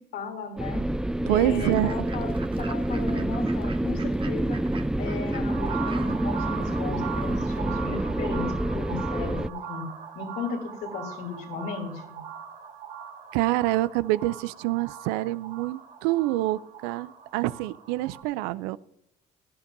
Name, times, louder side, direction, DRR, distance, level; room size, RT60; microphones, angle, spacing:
voice 1, 0.1-0.8 1.3-4.6 5.0-9.9 10.1-12.2, left 5 dB, 75° left, 2 dB, 3.1 m, -36 dB
sound 1, 0.6-9.5, right 1 dB, 5° right, 0.3 m, -28 dB
voice 2, 1.3-2.1 13.3-18.8, right 17 dB, 85° right, 18 dB, 0.4 m, -26 dB
Fowl / Bird, 1.4-7.6, right 4 dB, 30° right, 1.1 m, -46 dB
sound 2, 5.5-18.2, right 8 dB, 50° right, 1.6 m, -39 dB
16.0 x 11.5 x 2.6 m, 0.82 s
supercardioid pair, 70°, 16 cm